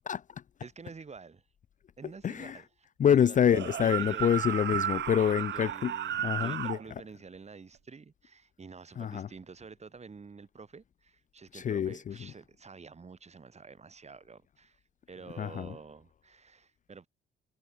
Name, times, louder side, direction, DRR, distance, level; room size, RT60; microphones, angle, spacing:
voice 1, 0.6-1.4 2.0-3.4 3.8-4.4 5.1-14.8 15.1-17.1, right 5 dB, 35° right, 5.9 m, -49 dB
voice 2, 2.2-2.6 3.0-5.9 6.2-6.8 9.0-9.3 11.5-12.1 15.4-15.7, left 9 dB, 40° left, 0.5 m, -26 dB
sound 1, 3.4-6.8, right 10 dB, 60° right, 1.8 m, -33 dB
cardioid pair, 90°, 20 cm